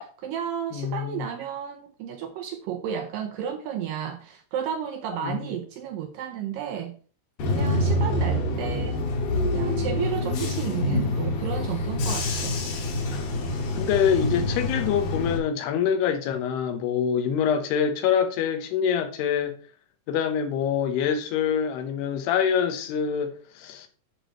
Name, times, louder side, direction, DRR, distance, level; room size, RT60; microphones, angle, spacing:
voice 1, 0.0-7.0 7.5-9.0 9.5-12.6, right 8 dB, 85° right, 2.0 m, -33 dB
voice 2, 0.7-1.3 5.2-5.5 8.0-8.6 13.8-19.5 20.1-23.9, left 8 dB, 90° left, 3.1 m, -25 dB
Bus / Engine, 7.4-15.4, left 1 dB, 60° left, 2.7 m, -26 dB
13.5 x 5.1 x 3.0 m
omnidirectional pair, 4.5 m